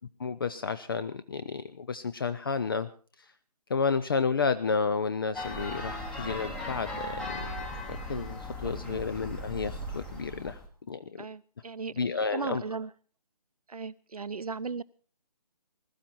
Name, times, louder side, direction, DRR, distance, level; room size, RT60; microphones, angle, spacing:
voice 1, 0.2-2.9 3.2-3.3 3.7-7.5 7.9-10.6 10.9-11.3 12.0-12.6, left 5 dB, 35° left, 14 dB, 0.6 m, -31 dB
sound 1, 5.3-10.7, left 1 dB, 5° left, 1.0 m, -37 dB
voice 2, 8.6-9.3 11.2-12.0 12.3-12.9 13.7-14.8, right 4 dB, 60° right, 16 dB, 0.9 m, -37 dB
21.0 x 13.0 x 4.4 m, 0.41 s
figure-of-eight pair, 145°, 21 cm